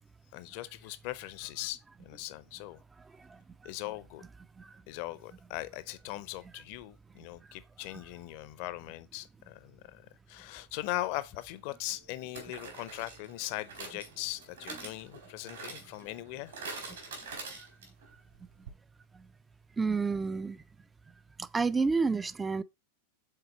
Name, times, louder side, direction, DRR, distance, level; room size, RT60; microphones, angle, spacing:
voice 1, 0.3-2.8 3.6-4.2 4.9-16.5, left 17 dB, 45° left, 0.6 m, -40 dB
sound 1, 11.1-11.2 12.3-18.1 18.4-18.5 18.7-18.8, right 4 dB, 65° right, 2.4 m, -45 dB
voice 2, 19.8-20.6 21.4-22.6, right 4 dB, 15° right, 0.3 m, -29 dB
6.6 x 4.0 x 4.0 m
figure-of-eight pair, 90°, 0 cm